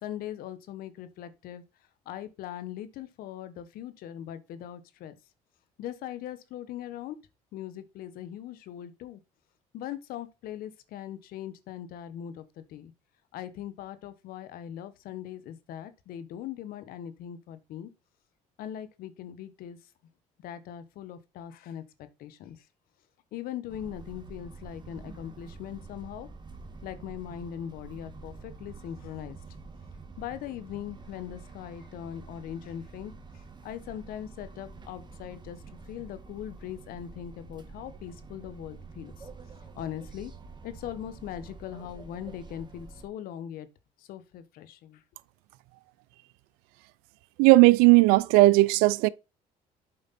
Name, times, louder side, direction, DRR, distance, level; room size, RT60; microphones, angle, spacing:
voice 1, 0.0-1.6 2.0-5.1 5.8-7.2 7.5-9.2 9.7-12.9 13.3-17.9 18.6-19.8 20.4-22.7 23.3-26.3 26.8-29.4 30.2-39.3 39.7-40.3 40.6-43.7 44.0-45.0, left 10 dB, 75° left, 1.1 m, -40 dB
Train interior Antwerp, 23.7-43.1, right 4 dB, 30° right, 1.6 m, -47 dB
voice 2, 47.4-49.1, right 21 dB, 85° right, 0.4 m, -17 dB
7.9 x 5.2 x 4.2 m
supercardioid pair, 75°, 15 cm